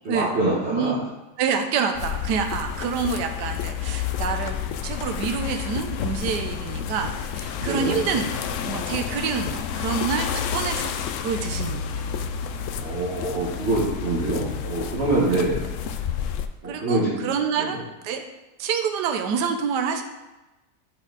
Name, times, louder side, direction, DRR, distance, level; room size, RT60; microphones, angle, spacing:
voice 1, 0.0-1.0 7.6-8.2 12.8-15.6 16.6-17.3 17.6-17.8, right 2 dB, 40° right, -7 dB, 1.7 m, -25 dB
voice 2, 1.4-8.4 8.6-10.9 11.2-12.0 15.3-15.4 16.6-17.8 18.0-18.2 18.6-20.0, right 6 dB, 80° right, 5 dB, 1.3 m, -27 dB
sound 1, 2.0-16.5, left 8 dB, 75° left, 0.7 m, -30 dB
10.5 x 4.3 x 4.0 m, 1.0 s
omnidirectional pair, 1.8 m